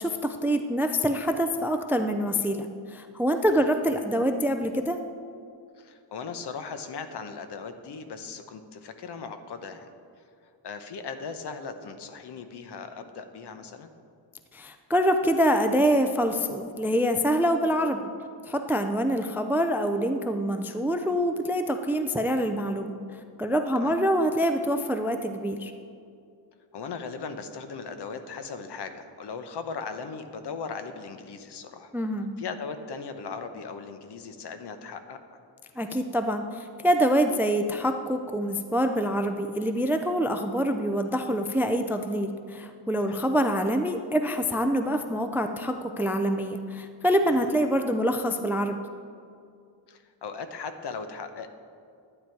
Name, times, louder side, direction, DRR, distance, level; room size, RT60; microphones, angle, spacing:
voice 1, 0.0-5.0 14.5-18.1 18.5-22.9 23.4-25.7 31.9-32.3 35.8-48.8, equal, 5° right, 7 dB, 0.3 m, -25 dB
voice 2, 5.8-9.9 10.6-13.9 23.7-23.9 26.7-31.9 32.4-35.4 43.0-43.2 47.3-47.5 49.9-51.5, left 5 dB, 60° left, 8 dB, 0.9 m, -38 dB
12.0 x 9.0 x 4.6 m, 2.4 s
wide cardioid pair, 140°, 46 cm